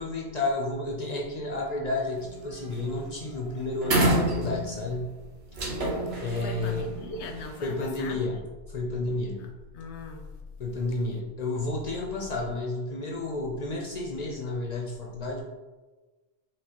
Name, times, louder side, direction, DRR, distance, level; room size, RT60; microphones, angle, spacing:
voice 1, 0.0-5.1 6.2-6.9 7.6-8.4 8.7-9.4 10.6-15.4, left 2 dB, 50° left, 0 dB, 0.5 m, -31 dB
sound 1, 2.1-2.4 2.7-3.0 3.3-3.4 3.8-4.9 5.5-7.6, right 1 dB, 70° right, 1.1 m, -27 dB
voice 2, 6.4-8.4 9.4-9.5 9.7-10.2, left 3 dB, 80° left, 4 dB, 0.9 m, -39 dB
5.0 x 3.0 x 2.8 m, 1.2 s
omnidirectional pair, 1.1 m